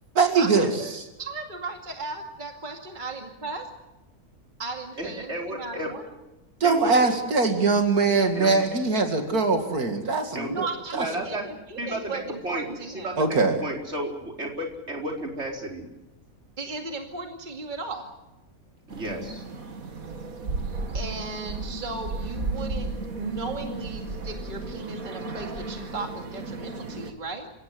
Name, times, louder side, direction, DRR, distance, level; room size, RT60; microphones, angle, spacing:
voice 1, 0.2-1.0 6.6-10.7 10.9-11.0 13.2-13.6, right 4 dB, 85° right, 5 dB, 2.7 m, -22 dB
voice 2, 1.2-3.6 4.6-6.0 10.5-13.1 16.6-18.1 20.9-22.9 23.2-27.5, right 3 dB, 30° right, 3 dB, 2.4 m, -36 dB
voice 3, 5.0-5.9 6.6-6.9 8.3-8.5 10.3-10.5 10.9-13.3 13.6-15.9 18.9-19.4, right 1 dB, 45° right, 1 dB, 4.8 m, -33 dB
sound 1, 18.9-27.1, right 2 dB, 70° right, 2.4 m, -34 dB
28.5 x 17.0 x 7.8 m, 1.0 s
omnidirectional pair, 1.5 m